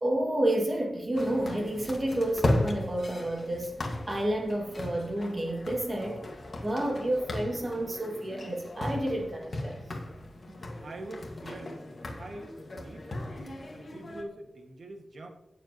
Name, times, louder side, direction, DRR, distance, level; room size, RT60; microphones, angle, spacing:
voice 1, 0.0-6.2 6.6-10.0, right 1 dB, 30° right, 2.2 m, -30 dB
sound 1, 1.1-14.2, left 1 dB, 40° left, 1.7 m, -36 dB
voice 2, 10.2-11.8 12.2-13.4 13.7-15.3, right 2 dB, 60° right, 1.8 m, -45 dB
17.5 x 7.1 x 3.0 m
wide cardioid pair, 130°, 0 cm